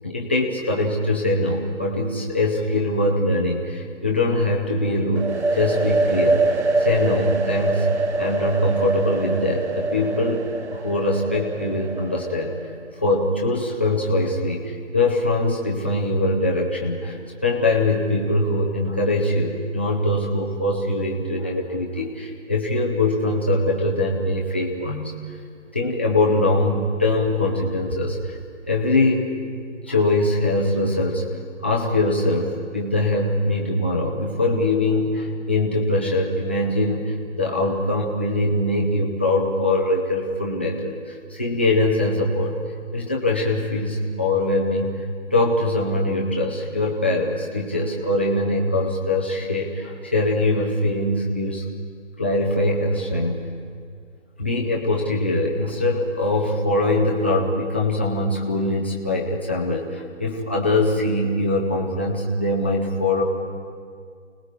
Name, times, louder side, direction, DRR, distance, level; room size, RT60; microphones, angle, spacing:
voice 1, 0.0-7.9 8.2-12.5 13.0-25.1 25.7-28.4 28.7-29.3 29.9-31.2 31.6-42.6 42.9-45.0 45.3-51.7 52.2-53.4 54.4-63.2, left 2 dB, 10° left, -3 dB, 0.6 m, -22 dB
sound 1, 5.1-12.8, right 3 dB, 60° right, 1.3 m, -24 dB
29.0 x 19.5 x 4.7 m, 2.2 s
figure-of-eight pair, 160°, 37 cm